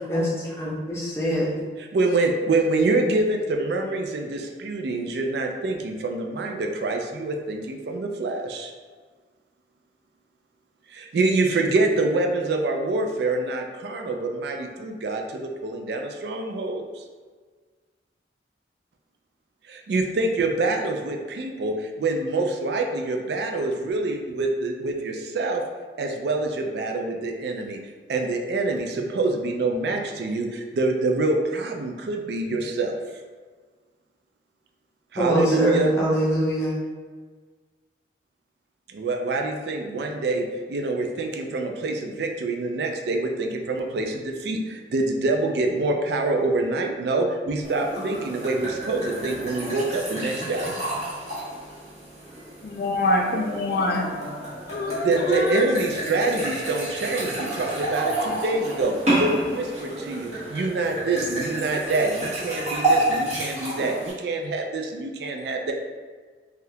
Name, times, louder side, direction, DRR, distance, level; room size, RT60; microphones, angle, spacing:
voice 1, 0.1-1.6 35.2-36.7, equal, 15° left, -7 dB, 0.7 m, -24 dB
voice 2, 1.8-8.7 10.9-17.0 19.7-25.6 26.0-27.8 28.1-32.9 35.1-35.9 38.9-50.7 55.0-65.7, right 2 dB, 60° right, 2 dB, 0.3 m, -26 dB
sound 1, 47.6-64.1, right 1 dB, 40° right, 1.0 m, -30 dB
voice 3, 52.6-54.1 54.7-55.6, left 2 dB, 55° left, 3 dB, 0.3 m, -25 dB
3.4 x 2.3 x 2.7 m, 1.5 s
head